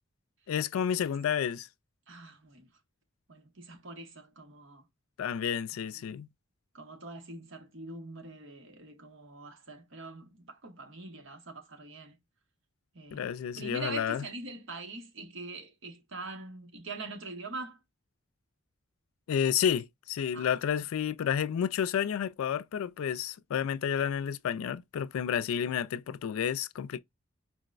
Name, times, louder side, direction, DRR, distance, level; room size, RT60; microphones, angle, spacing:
voice 1, 0.5-1.7 5.2-6.3 13.1-14.2 19.3-27.0, left 8 dB, 85° left, 0.3 m, -30 dB
voice 2, 2.1-2.7 3.3-4.8 6.0-6.1 6.7-12.2 12.9-13.3 13.5-17.8 20.3-20.5, right 3 dB, 65° right, 0.9 m, -43 dB
4.5 x 2.0 x 2.3 m
head